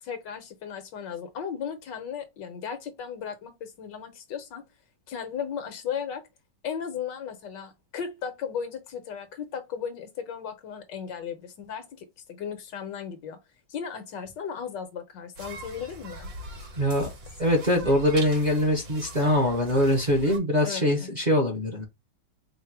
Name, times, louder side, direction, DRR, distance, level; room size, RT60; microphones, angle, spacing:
voice 1, 0.0-4.6 5.1-6.2 6.6-13.4 13.7-16.3 20.6-21.1, left 7 dB, 75° left, 1.6 m, -36 dB
sound 1, 15.4-20.4, right 2 dB, 85° right, 2.4 m, -41 dB
voice 2, 16.8-17.1 17.4-21.8, left 1 dB, 30° right, 0.9 m, -23 dB
4.7 x 2.2 x 4.6 m
omnidirectional pair, 2.0 m